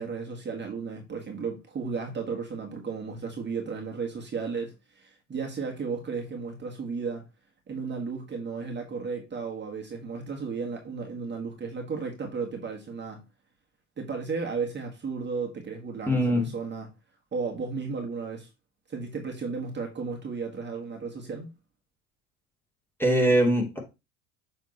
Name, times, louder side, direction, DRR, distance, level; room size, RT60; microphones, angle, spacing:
voice 1, 0.0-7.3 7.7-13.2 14.0-16.9 17.3-18.5 18.9-21.5, right 5 dB, 30° right, 1.9 m, -34 dB
voice 2, 16.1-16.5 23.0-23.8, equal, 5° left, 2.4 m, -22 dB
7.4 x 3.6 x 4.2 m
hypercardioid pair, 75°, 39 cm